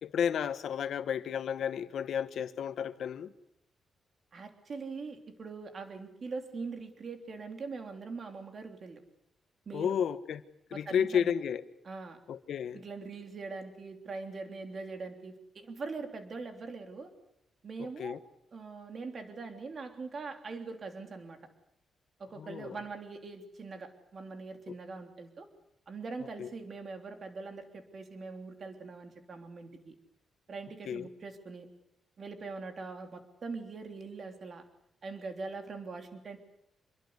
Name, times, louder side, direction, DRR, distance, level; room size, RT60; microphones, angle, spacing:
voice 1, 0.0-3.3 9.7-10.4 10.7-11.6 12.3-12.8 18.0-18.2 22.4-22.8 26.4-26.5 30.9-31.1, left 8 dB, 60° left, 12 dB, 1.4 m, -32 dB
voice 2, 4.3-9.0 9.6-10.0 10.7-11.3 11.8-12.2 12.7-17.1 17.6-18.2 18.5-21.4 22.2-25.5 25.9-29.9 30.5-31.7 32.2-34.6 35.0-36.4, right 4 dB, 35° right, 5 dB, 3.3 m, -42 dB
27.0 x 22.5 x 8.2 m, 0.76 s
wide cardioid pair, 175°, 0 cm